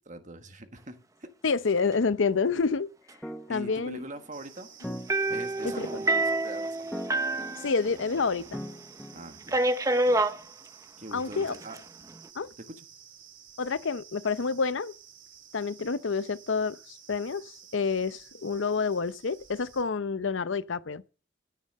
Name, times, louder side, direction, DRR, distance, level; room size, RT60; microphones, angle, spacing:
voice 1, 0.0-1.3 3.5-4.7 5.3-7.1 9.1-9.6 11.0-11.8 12.6-12.9, right 1 dB, 40° right, 1.5 m, -43 dB
voice 2, 1.4-2.9 3.5-4.0 5.8-5.9 7.6-8.6 11.1-11.6 12.4-12.5 13.6-14.9 15.5-16.8 17.1-21.0, left 4 dB, 80° left, 0.7 m, -28 dB
sound 1, 3.2-9.9, equal, 5° left, 0.9 m, -43 dB
sound 2, 4.3-19.8, right 8 dB, 75° right, 2.8 m, -53 dB
sound 3, 5.1-8.3 8.6-8.7 9.5-10.4 11.3-11.8, right 2 dB, 15° right, 0.6 m, -27 dB
12.5 x 9.5 x 6.5 m
head